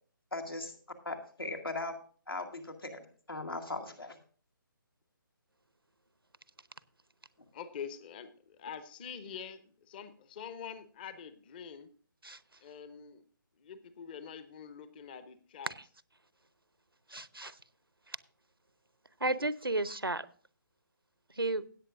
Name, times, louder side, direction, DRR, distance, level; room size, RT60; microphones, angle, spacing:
voice 1, 0.3-0.8 1.0-2.0 2.3-4.2, left 2 dB, 80° left, 2.2 m, -39 dB
voice 2, 7.5-11.9 12.6-13.2 13.6-15.7, left 7 dB, 25° left, 0.7 m, -45 dB
voice 3, 17.1-17.6 18.1-18.2 19.2-20.3 21.3-21.6, right 2 dB, 90° right, 0.7 m, -33 dB
17.5 x 8.5 x 2.5 m
figure-of-eight pair, 140°, 12 cm